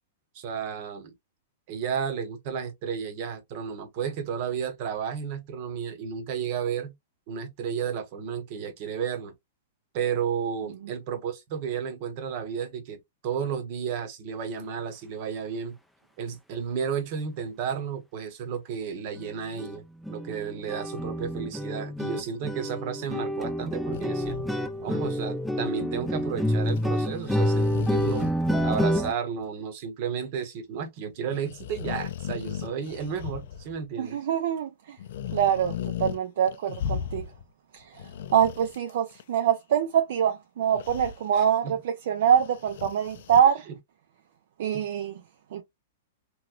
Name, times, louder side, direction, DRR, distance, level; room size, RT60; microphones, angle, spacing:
voice 1, 0.3-1.1 1.7-6.9 7.3-9.3 9.9-15.8 16.2-19.8 20.1-24.4 24.8-28.3 28.6-34.2 41.3-41.7 44.7-44.9, right 7 dB, 50° right, 0.9 m, -32 dB
sound 1, 19.1-19.3 19.6-19.8 20.0-29.1, equal, ahead, 0.4 m, -28 dB
sound 2, 23.9-25.1 26.7-26.9 27.1-29.1 29.4-29.5 31.3-33.9 35.0-36.2 36.5-37.4 37.8-39.2 40.7-41.2 42.3-43.4, left 8 dB, 65° left, 0.4 m, -37 dB
voice 2, 34.0-35.0 35.3-37.3 37.7-38.0 38.3-43.6 44.6-45.2 45.5-45.6, right 9 dB, 65° right, 0.4 m, -24 dB
3.0 x 2.9 x 2.4 m
hypercardioid pair, 135°, 0 cm